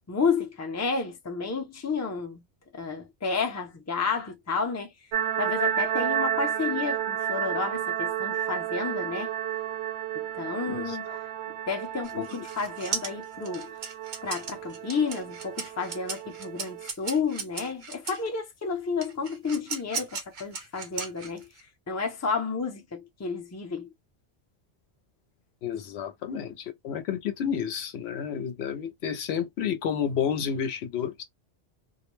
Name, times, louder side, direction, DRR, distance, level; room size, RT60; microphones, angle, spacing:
voice 1, 0.1-2.4 2.7-4.9 5.4-9.3 10.1-11.2 11.7-13.7 14.2-21.5 21.9-23.9, left 5 dB, 20° left, 0.5 m, -31 dB
sound 1, 5.1-16.9, right 10 dB, 80° right, 0.8 m, -32 dB
voice 2, 10.7-11.2 12.1-12.4 25.6-31.2, left 8 dB, 75° left, 0.8 m, -31 dB
sound 2, 12.0-18.3 19.0-21.6, right 5 dB, 50° right, 0.7 m, -36 dB
2.3 x 2.1 x 3.0 m
omnidirectional pair, 1.1 m